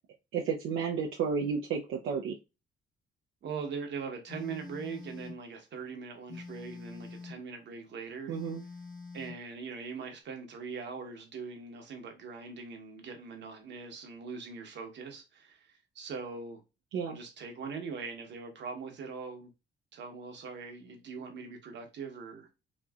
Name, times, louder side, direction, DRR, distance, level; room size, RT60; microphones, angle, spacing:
voice 1, 0.3-2.3 8.3-8.6 16.9-17.2, right 6 dB, 85° right, 0.5 m, -32 dB
voice 2, 3.4-8.3 9.1-16.6 17.1-19.5 19.9-22.5, right 5 dB, 65° right, 1.0 m, -41 dB
Telephone, 4.3-5.4 6.3-7.4 8.3-9.4, left 4 dB, 70° left, 1.2 m, -45 dB
3.0 x 2.6 x 2.3 m
cardioid pair, 90°, 20 cm